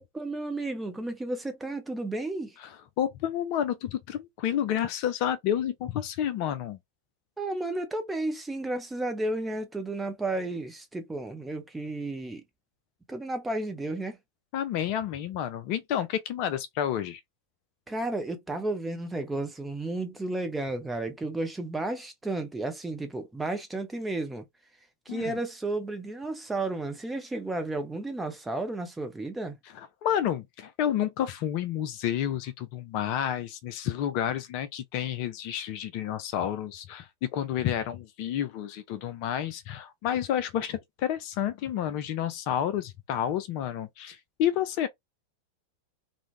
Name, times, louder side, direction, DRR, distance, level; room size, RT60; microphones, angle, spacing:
voice 1, 0.0-2.6 7.4-12.4 13.1-14.2 17.9-24.4 25.1-29.6, right 2 dB, 10° right, 0.7 m, -32 dB
voice 2, 2.6-6.8 14.5-17.2 25.1-25.3 29.8-44.9, left 10 dB, 45° left, 0.4 m, -30 dB
2.4 x 2.1 x 3.1 m
figure-of-eight pair, 90°, 0 cm